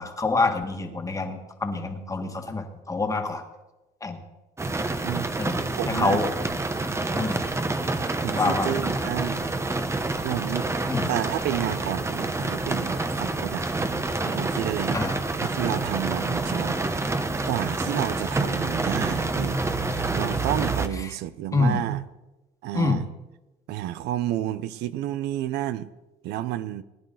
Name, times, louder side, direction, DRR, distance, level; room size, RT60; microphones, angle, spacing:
voice 1, 0.0-3.4 4.0-4.2 5.4-6.3 7.1-7.4 8.3-8.8 10.9-11.1 14.9-15.2 21.0-21.1 21.5-21.8 22.7-23.0, left 3 dB, 20° left, 1.7 m, -26 dB
sound 1, 4.6-20.9, right 2 dB, 15° right, 0.9 m, -28 dB
voice 2, 5.8-6.2 7.1-7.3 8.2-9.4 10.2-10.7 11.1-13.7 14.2-15.0 15.4-17.2 17.5-19.6 19.9-22.0 22.6-23.0 23.7-25.9 26.2-26.8, right 13 dB, 85° right, 0.7 m, -30 dB
20.0 x 10.0 x 3.9 m
cardioid pair, 110°, 17 cm